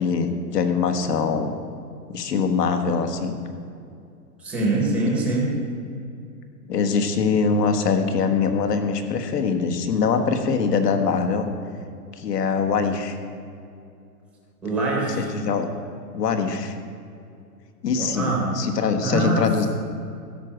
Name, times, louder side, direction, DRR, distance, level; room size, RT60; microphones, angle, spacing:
voice 1, 0.0-1.5 2.1-3.4 6.7-11.5 12.2-13.2 15.2-15.7 16.1-16.7 17.8-19.7, left 5 dB, 70° left, 6 dB, 1.6 m, -23 dB
voice 2, 4.4-5.6 14.6-15.3 17.9-18.5 19.0-19.7, right 2 dB, 5° right, -3 dB, 0.8 m, -24 dB
13.5 x 5.0 x 9.0 m, 2.5 s
hypercardioid pair, 175°, 50 cm